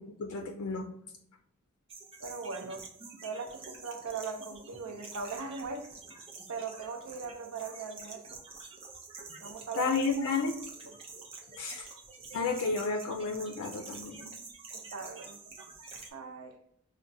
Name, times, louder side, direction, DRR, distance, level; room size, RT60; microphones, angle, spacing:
voice 1, 0.2-0.9 9.8-10.5 11.6-11.9 12.3-14.3, left 4 dB, 85° left, 0.4 m, -31 dB
sound 1, 1.9-16.1, right 4 dB, 25° right, 0.6 m, -48 dB
voice 2, 2.2-2.8 3.2-5.9 6.5-8.4 9.4-10.3 10.9-11.0 14.7-15.4 16.1-16.5, right 4 dB, 85° right, 0.6 m, -40 dB
5.7 x 2.1 x 2.6 m
head